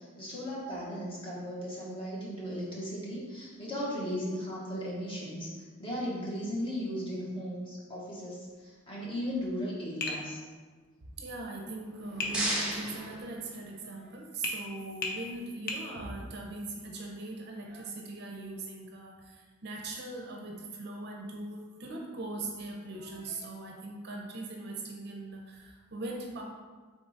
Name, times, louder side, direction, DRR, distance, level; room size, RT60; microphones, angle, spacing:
voice 1, 0.0-10.4, equal, 25° left, -6 dB, 1.1 m, -36 dB
Tap, 10.0-10.3 12.2-12.4 14.4-14.6 15.0-15.2 15.7-15.9, left 3 dB, 45° left, 0.5 m, -33 dB
voice 2, 11.2-26.4, right 2 dB, 50° right, 0 dB, 0.6 m, -40 dB
sound 1, 11.8-14.0, right 1 dB, 5° right, 0.7 m, -35 dB
3.7 x 3.7 x 3.8 m, 1.4 s
head